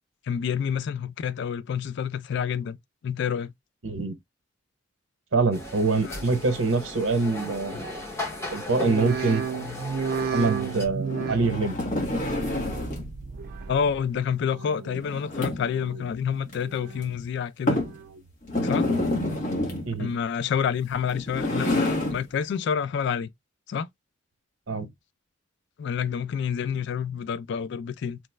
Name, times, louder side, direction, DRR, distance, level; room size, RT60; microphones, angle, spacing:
voice 1, 0.3-2.8 3.0-3.5 6.0-6.2 13.7-17.8 18.6-18.9 20.0-23.3 23.7-23.9 25.8-28.2, left 7 dB, 65° left, 0.3 m, -28 dB
voice 2, 3.8-4.2 5.3-8.0 8.5-9.4 10.3-11.8 18.8-19.1 19.8-20.1 24.7-24.9, right 3 dB, 80° right, 0.8 m, -25 dB
sound 1, 5.5-10.8, left 2 dB, 15° left, 1.0 m, -36 dB
sound 2, 8.7-14.1 14.4-15.0 15.5-16.1 16.6-17.2 17.7-18.3 18.8-19.4 19.9-20.0, right 5 dB, 55° right, 0.6 m, -34 dB
sound 3, 11.0-13.1 14.9-15.8 16.5-16.6 17.0-17.1 17.7-18.0 18.4-19.9 21.0-22.2, left 1 dB, 40° left, 1.1 m, -28 dB
3.1 x 2.1 x 3.2 m
head